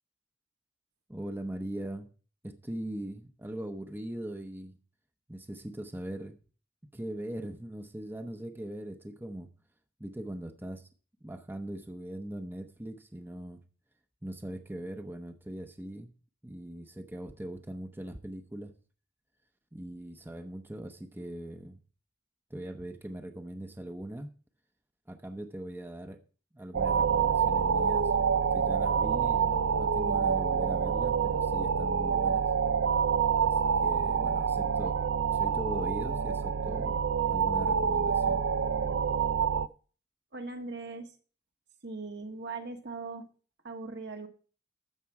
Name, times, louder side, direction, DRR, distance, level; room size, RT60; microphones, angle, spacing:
voice 1, 1.1-2.1 2.4-4.8 5.3-6.4 6.9-9.5 10.0-10.9 11.2-13.6 14.2-16.1 16.4-18.7 19.7-21.8 22.5-24.3 25.1-26.2 26.5-28.1 28.5-32.5 33.4-35.0 35.3-37.0 37.3-38.4, right 1 dB, 10° right, 6 dB, 0.8 m, -40 dB
sound 1, 26.7-39.7, right 6 dB, 80° right, 0.5 m, -27 dB
voice 2, 40.3-41.1 41.8-43.3 43.6-44.3, right 3 dB, 60° right, 5 dB, 1.5 m, -39 dB
13.0 x 7.4 x 4.8 m, 0.40 s
head